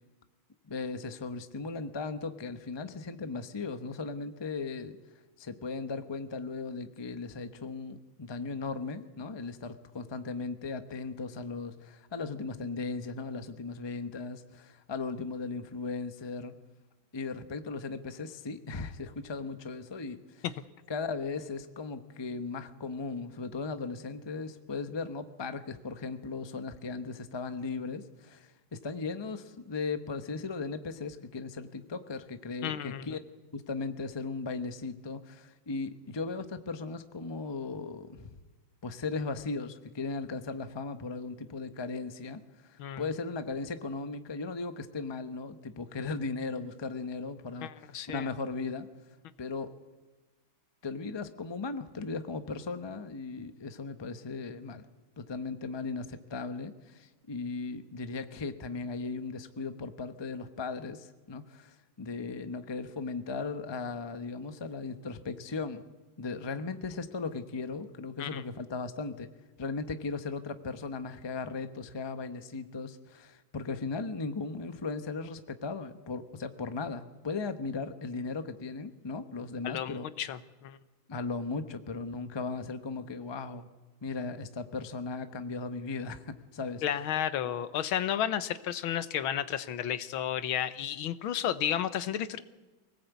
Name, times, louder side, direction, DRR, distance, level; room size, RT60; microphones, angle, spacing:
voice 1, 0.7-5.0 5.4-16.5 17.1-20.4 20.9-33.2 33.5-38.4 38.8-47.7 48.1-48.9 49.4-49.7 50.8-54.8 55.2-65.8 66.2-69.3 69.6-80.1 81.1-83.7 84.0-86.8, left 4 dB, 20° left, 9 dB, 0.7 m, -37 dB
voice 2, 32.6-33.1 42.8-43.1 47.6-48.3 68.2-68.4 79.6-80.8 86.8-92.4, left 10 dB, 80° left, 13 dB, 1.7 m, -32 dB
24.5 x 18.0 x 8.3 m, 1.2 s
omnidirectional pair, 2.2 m